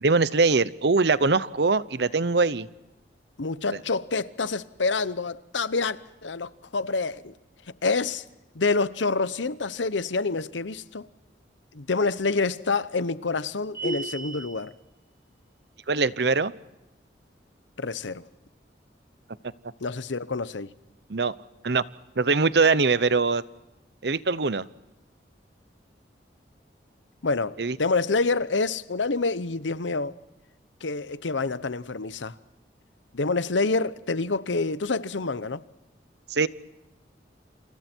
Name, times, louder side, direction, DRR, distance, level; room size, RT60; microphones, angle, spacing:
voice 1, 0.0-2.7 15.9-16.5 21.1-21.3 21.6-21.8 22.2-23.4 24.0-24.7 27.6-27.8 36.3-36.5, right 4 dB, 65° right, 0.8 m, -22 dB
voice 2, 3.4-7.3 7.8-8.2 8.5-11.1 11.7-14.7 17.8-18.2 19.8-20.7 27.2-30.2 30.8-32.3 33.1-35.6, left 3 dB, 90° left, 0.9 m, -27 dB
sound 1, 13.7-14.6, right 2 dB, 25° left, 2.8 m, -33 dB
29.0 x 28.0 x 4.5 m
head